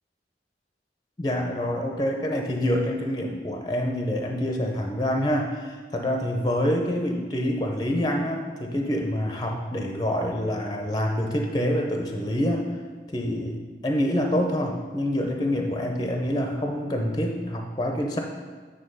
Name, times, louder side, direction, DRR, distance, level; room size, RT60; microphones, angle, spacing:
voice 1, 1.2-12.7 13.1-18.2, equal, 20° left, 2 dB, 0.6 m, -26 dB
9.0 x 3.4 x 5.4 m, 1.5 s
head